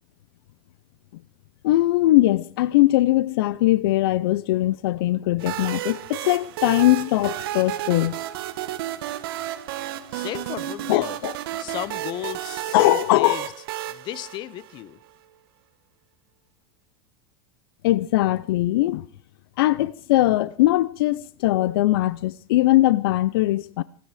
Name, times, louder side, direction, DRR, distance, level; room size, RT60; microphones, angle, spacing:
voice 1, 1.6-8.2 10.9-11.3 12.7-13.4 17.8-19.1 19.6-23.8, left 16 dB, 70° left, 0.6 m, -20 dB
sound 1, 5.4-15.0, right 13 dB, 70° right, 1.3 m, -32 dB
voice 2, 10.1-11.2 11.5-13.5 13.9-15.0, left 14 dB, 35° left, 0.9 m, -34 dB
26.5 x 9.4 x 4.9 m
supercardioid pair, 145°, 13 cm